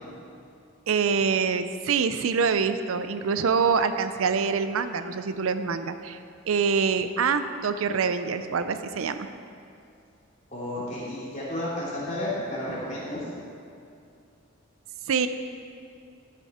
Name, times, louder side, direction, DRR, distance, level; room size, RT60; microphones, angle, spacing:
voice 1, 0.9-6.2 6.5-9.3 15.1-15.3, right 5 dB, 85° right, 10 dB, 0.5 m, -25 dB
voice 2, 10.5-13.2, left 1 dB, 35° left, -7 dB, 2.8 m, -32 dB
13.5 x 6.8 x 4.3 m, 2.5 s
head